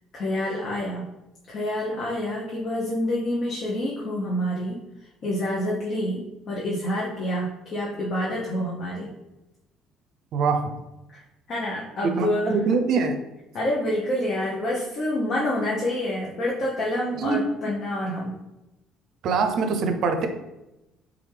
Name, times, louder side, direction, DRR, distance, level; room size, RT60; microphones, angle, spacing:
voice 1, 0.1-1.0 1.5-4.8 5.2-9.1 11.1-11.2 11.5-12.6 13.5-18.3, left 1 dB, 50° left, -4 dB, 0.8 m, -27 dB
voice 2, 10.3-10.8 12.0-13.2 17.2-17.4 19.2-20.3, right 4 dB, 55° right, 6 dB, 0.5 m, -23 dB
3.5 x 3.1 x 3.4 m, 0.96 s
figure-of-eight pair, 55°, 0 cm